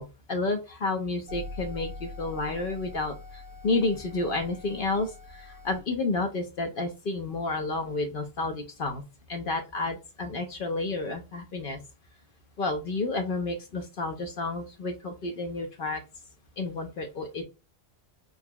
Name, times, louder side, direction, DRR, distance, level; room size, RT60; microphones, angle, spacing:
voice 1, 0.0-3.1 3.6-9.0 9.3-11.8 12.6-16.0 16.6-17.4, left 3 dB, 60° left, 5 dB, 0.8 m, -30 dB
sound 1, 1.3-5.8, left 2 dB, 85° right, 1.1 m, -43 dB
4.0 x 2.9 x 2.2 m, 0.27 s
omnidirectional pair, 1.1 m